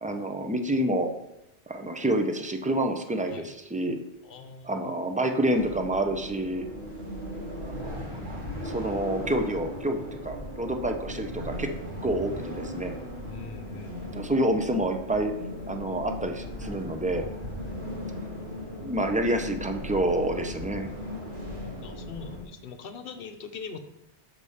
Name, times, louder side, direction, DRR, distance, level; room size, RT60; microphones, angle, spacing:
voice 1, 0.0-1.1 1.7-4.0 4.6-6.7 7.6-11.7 12.0-12.9 14.1-15.3 15.7-17.2 18.8-20.9, right 1 dB, 10° right, 5 dB, 0.4 m, -28 dB
voice 2, 4.2-4.7 13.3-14.3 21.5-23.8, left 5 dB, 60° left, 8 dB, 0.9 m, -42 dB
sound 1, 5.5-22.4, left 1 dB, 75° right, 1.9 m, -37 dB
6.6 x 4.9 x 5.5 m, 0.87 s
omnidirectional pair, 1.1 m